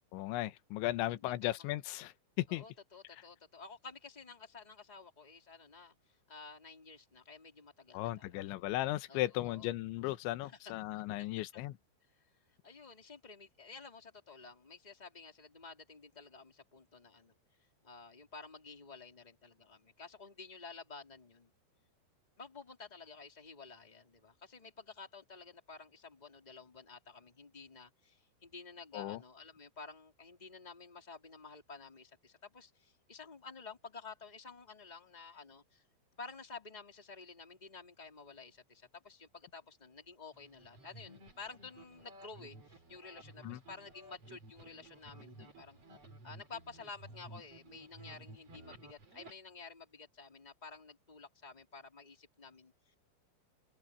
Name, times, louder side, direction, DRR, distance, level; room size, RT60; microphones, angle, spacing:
voice 1, 0.1-2.6 7.9-11.8 28.9-29.2 43.4-43.6, left 16 dB, 75° left, 3.1 m, -36 dB
voice 2, 1.1-1.7 2.5-8.5 9.1-9.7 10.4-10.7 11.2-11.3 12.2-12.3 12.6-17.3 17.8-21.5 22.4-35.8 36.2-45.8 46.2-52.9, left 4 dB, 10° left, 3.2 m, -52 dB
sound 1, 40.3-49.3, right 2 dB, 30° right, 6.0 m, -55 dB
open air
omnidirectional pair, 5.9 m